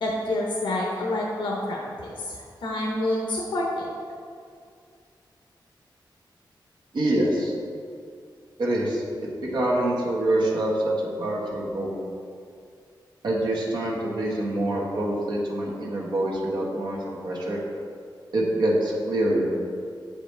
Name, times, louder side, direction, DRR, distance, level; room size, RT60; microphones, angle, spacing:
voice 1, 0.0-3.9, left 1 dB, 80° left, -3 dB, 0.8 m, -28 dB
voice 2, 6.9-7.5 8.6-12.0 13.2-17.6 18.3-19.5, right 1 dB, 65° right, -4 dB, 1.3 m, -25 dB
8.4 x 4.9 x 3.3 m, 2.3 s
wide cardioid pair, 150°, 8 cm